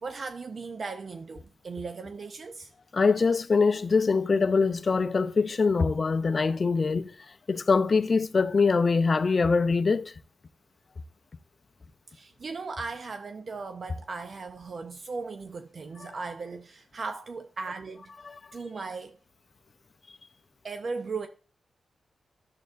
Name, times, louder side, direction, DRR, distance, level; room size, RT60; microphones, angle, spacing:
voice 1, 0.0-2.7 12.1-18.1 18.5-19.2 20.6-21.3, right 4 dB, 55° right, 0.6 m, -37 dB
voice 2, 2.9-7.1 7.5-10.1, left 4 dB, 45° left, 0.6 m, -23 dB
11.5 x 7.4 x 2.5 m
cardioid pair, 90°, 0 cm